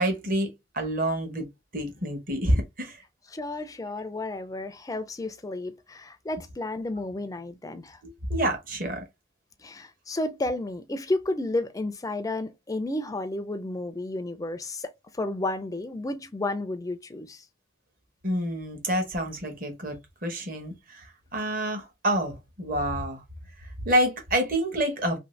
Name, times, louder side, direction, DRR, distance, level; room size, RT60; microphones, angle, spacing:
voice 1, 0.0-1.5 1.7-3.0 8.0-9.0 18.2-23.2 23.6-25.2, right 1 dB, 45° right, 0.9 m, -28 dB
voice 2, 3.3-8.0 9.6-17.5, left 2 dB, 15° left, 0.4 m, -32 dB
2.7 x 2.6 x 3.1 m
head